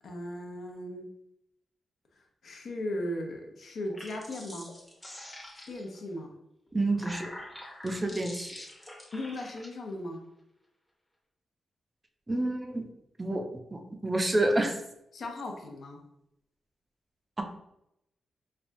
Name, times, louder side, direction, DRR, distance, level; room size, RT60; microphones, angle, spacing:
voice 1, 0.0-1.1 2.4-4.7 5.7-6.3 9.1-10.2 15.1-16.0, left 1 dB, 70° left, 2 dB, 0.6 m, -37 dB
sound 1, 3.8-6.0 6.7-9.7, left 1 dB, 10° left, 0.7 m, -46 dB
voice 2, 6.7-7.3 7.8-8.5 12.3-12.9 13.2-13.4 13.7-14.8 17.4-17.5, right 2 dB, 25° right, 4 dB, 0.4 m, -28 dB
3.3 x 2.2 x 2.6 m, 0.82 s
cardioid pair, 75°, 0 cm